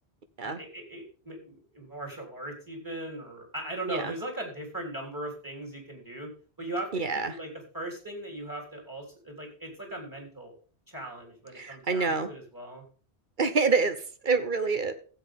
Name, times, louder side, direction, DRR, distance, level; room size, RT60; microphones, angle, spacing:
voice 1, 0.4-6.3 6.6-10.5 10.9-12.8, right 1 dB, 15° right, 1 dB, 3.8 m, -39 dB
voice 2, 6.9-7.3 11.6-12.3 13.4-14.9, right 4 dB, 50° right, 10 dB, 1.1 m, -27 dB
15.5 x 8.2 x 3.7 m, 0.39 s
omnidirectional pair, 1.1 m